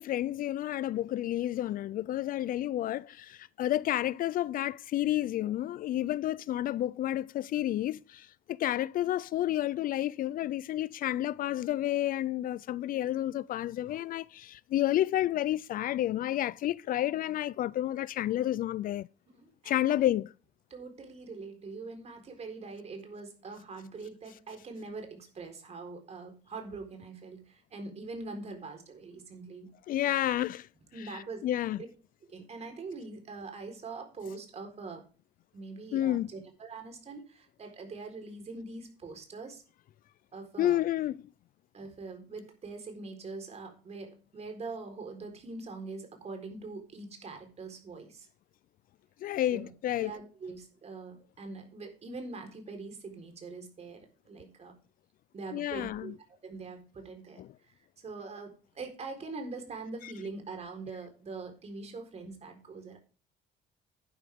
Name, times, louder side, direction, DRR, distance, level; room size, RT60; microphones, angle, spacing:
voice 1, 0.0-19.1 19.6-20.3 29.9-30.7 31.1-31.8 35.9-36.3 40.6-41.2 49.2-50.1 55.5-56.1 57.4-57.5, left 13 dB, 55° left, 0.4 m, -30 dB
voice 2, 19.3-20.1 20.7-29.7 30.9-31.7 32.2-35.0 35.5-39.6 40.3-40.8 41.7-48.3 49.5-49.7 50.0-54.7 55.3-56.1 56.4-63.0, right 3 dB, 40° right, 4.2 m, -43 dB
11.0 x 11.0 x 3.6 m
cardioid pair, 110°, 17 cm